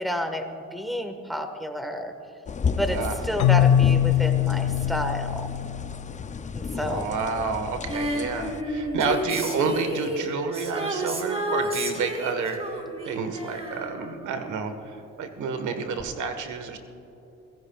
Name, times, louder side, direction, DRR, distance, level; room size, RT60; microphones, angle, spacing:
voice 1, 0.0-2.1 2.7-5.5 6.5-7.1, equal, ahead, 6 dB, 1.4 m, -30 dB
sound 1, 2.5-8.6, left 5 dB, 25° left, 0.5 m, -33 dB
voice 2, 2.9-3.2 6.7-12.6 13.0-16.8, right 5 dB, 75° right, 7 dB, 1.4 m, -30 dB
Keyboard (musical), 3.4-7.1, left 11 dB, 75° left, 0.8 m, -23 dB
Female singing, 7.9-14.9 16.0-16.1, equal, 20° right, 2.7 m, -31 dB
24.5 x 16.0 x 2.4 m, 3.0 s
cardioid pair, 90°, 30 cm